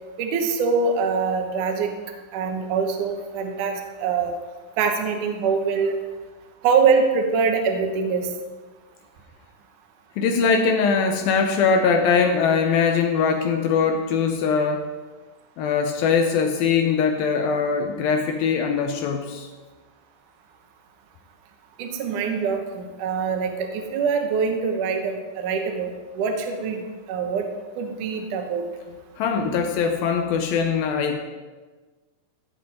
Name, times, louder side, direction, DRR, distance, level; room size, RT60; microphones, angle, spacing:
voice 1, 0.2-1.9 2.3-4.4 4.8-6.0 6.6-8.3 21.8-27.4 27.8-28.6, right 5 dB, 65° right, 3 dB, 2.3 m, -24 dB
voice 2, 10.2-14.9 15.6-19.5 29.2-31.2, left 5 dB, 75° left, 4 dB, 2.3 m, -21 dB
15.0 x 7.9 x 4.3 m, 1.3 s
omnidirectional pair, 4.6 m